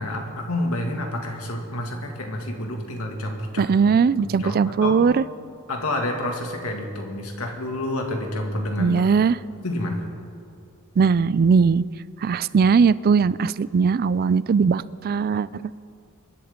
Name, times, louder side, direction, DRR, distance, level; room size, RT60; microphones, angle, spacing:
voice 1, 0.0-3.8 4.2-5.0 5.7-9.1 9.6-10.0, left 1 dB, 80° left, 2 dB, 2.1 m, -29 dB
voice 2, 3.6-5.2 8.8-9.4 11.0-11.8 12.2-15.7, right 5 dB, 45° right, 19 dB, 0.3 m, -19 dB
25.0 x 12.0 x 3.7 m, 2.5 s
head